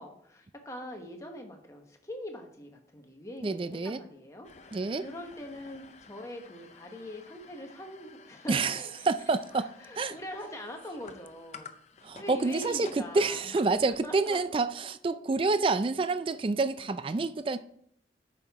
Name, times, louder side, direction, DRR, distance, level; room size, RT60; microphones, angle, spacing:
voice 1, 0.0-11.7 12.1-13.6 13.9-14.4, equal, 15° left, 1.1 m, -43 dB
voice 2, 3.4-4.0 4.7-5.0 8.5-9.7 10.0-10.1 12.0-17.6, right 3 dB, 30° right, 0.3 m, -28 dB
sound 1, 4.4-14.8, left 5 dB, 40° left, 0.6 m, -53 dB
9.1 x 5.8 x 3.5 m
head